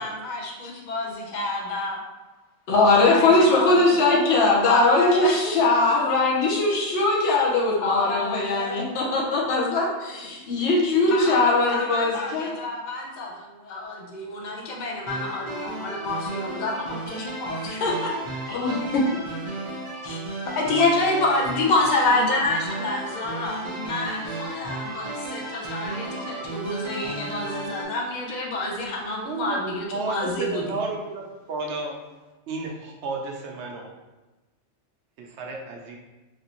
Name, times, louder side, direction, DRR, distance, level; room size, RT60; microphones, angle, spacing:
voice 1, 0.0-2.0 2.9-5.5 6.9-7.0 7.8-9.0 11.1-18.1 20.0-20.2 20.5-30.8, left 2 dB, 45° left, -1 dB, 0.7 m, -28 dB
voice 2, 2.7-12.5 18.5-19.0 20.8-20.9, left 3 dB, 75° left, -3 dB, 1.0 m, -21 dB
sound 1, 15.1-27.8, right 2 dB, 35° right, 0.5 m, -34 dB
voice 3, 29.2-29.6 29.9-32.0 32.5-33.9 35.2-36.0, right 3 dB, 75° right, 1 dB, 0.8 m, -32 dB
3.3 x 2.6 x 2.8 m, 1.1 s
omnidirectional pair, 1.2 m